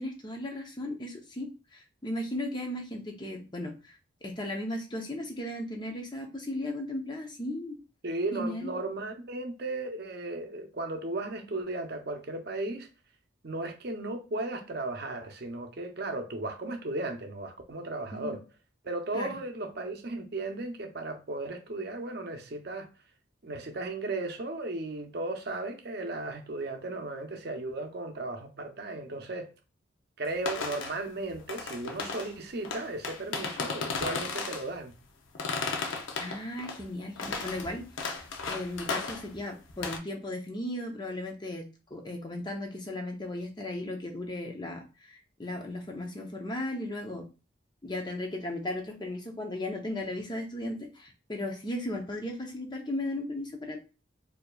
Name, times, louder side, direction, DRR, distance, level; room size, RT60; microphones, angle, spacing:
voice 1, 0.0-7.8 8.3-8.7 18.1-18.4 19.1-19.3 36.2-37.8 38.4-41.6 41.9-47.2 47.8-53.8, left 1 dB, 20° left, 0.7 m, -36 dB
voice 2, 8.0-12.9 13.4-18.4 18.8-22.9 23.4-29.5 30.2-34.9, right 2 dB, 50° right, 0.6 m, -35 dB
sound 1, 30.3-31.0 31.3-32.3 32.6-34.7 35.3-36.8 37.2-39.4 39.7-40.0, left 4 dB, 75° left, 0.6 m, -35 dB
4.5 x 2.7 x 2.3 m
head